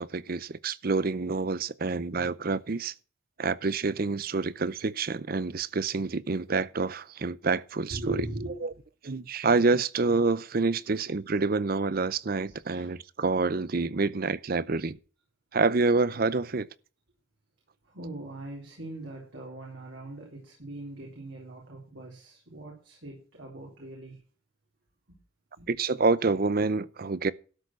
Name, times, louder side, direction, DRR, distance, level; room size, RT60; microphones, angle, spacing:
voice 1, 0.0-2.9 3.4-8.3 8.6-8.7 9.0-15.0 15.5-16.7 25.7-27.3, right 3 dB, 45° right, 0.6 m, -27 dB
voice 2, 7.9-8.8 12.4-12.9 17.9-24.2 25.6-25.7, right 2 dB, 65° right, 3.7 m, -40 dB
12.5 x 6.7 x 6.1 m
head